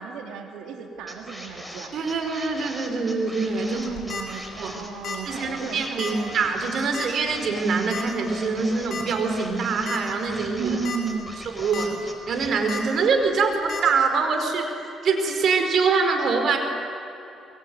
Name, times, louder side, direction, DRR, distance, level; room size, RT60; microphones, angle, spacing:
voice 1, 0.0-1.9 3.7-6.3 10.6-11.4, right 6 dB, 90° right, 3 dB, 3.4 m, -34 dB
sound 1, 1.1-12.5, equal, ahead, 4.5 m, -40 dB
voice 2, 1.9-3.9 4.6-4.8 5.3-10.7 11.6-14.7 15.0-16.6, right 4 dB, 65° right, 5 dB, 4.7 m, -24 dB
sound 2, 3.8-4.2 5.0-5.3 5.5-5.6 6.0-6.1 6.9-7.2 7.9-8.0 8.9-9.0 9.5-9.6 9.9-10.0 10.7-11.0 11.4-11.9 12.7-12.8 13.7-13.8, left 5 dB, 55° left, 5.3 m, -32 dB
24.5 x 22.5 x 9.5 m, 2.9 s
cardioid pair, 90°, 0 cm